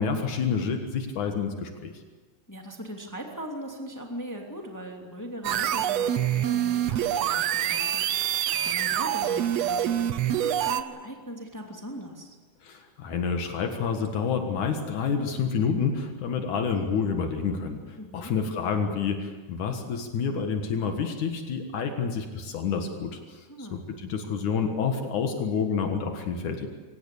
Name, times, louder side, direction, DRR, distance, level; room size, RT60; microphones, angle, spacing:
voice 1, 0.0-1.9 12.6-26.7, left 6 dB, 75° left, 5 dB, 3.0 m, -28 dB
voice 2, 2.5-12.4 18.0-18.3 23.5-23.8, equal, 5° left, 1 dB, 2.3 m, -40 dB
sound 1, 5.4-10.8, right 10 dB, 65° right, 1.9 m, -26 dB
23.5 x 19.0 x 8.6 m, 1.3 s
omnidirectional pair, 3.6 m